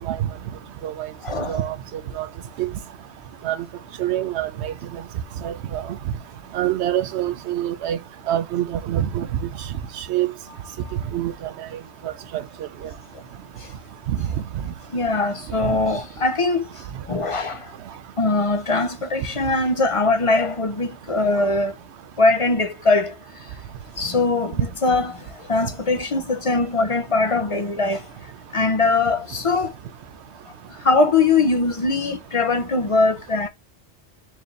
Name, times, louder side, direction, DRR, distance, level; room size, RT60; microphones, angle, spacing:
voice 1, 1.2-1.6 14.9-16.6 17.1-17.7 18.2-21.7 22.2-23.1 24.0-28.1 28.5-29.7 30.8-33.5, left 3 dB, 35° left, 0.6 m, -21 dB
voice 2, 4.0-4.7 5.4-5.8 6.5-8.0 8.3-9.3 10.1-10.3 11.1-11.3 12.3-12.4, right 12 dB, 75° right, 0.8 m, -24 dB
4.7 x 2.6 x 3.1 m
omnidirectional pair, 1.2 m